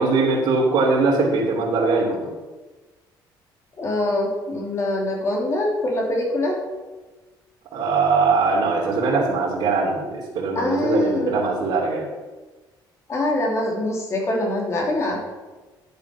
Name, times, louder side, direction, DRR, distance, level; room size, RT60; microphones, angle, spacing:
voice 1, 0.0-2.3 7.7-12.0, right 3 dB, 65° right, -7 dB, 3.3 m, -21 dB
voice 2, 3.8-6.6 10.5-11.4 13.1-15.2, left 1 dB, 35° left, -1 dB, 3.2 m, -24 dB
11.0 x 7.6 x 6.2 m, 1.2 s
cardioid pair, 130°, 8 cm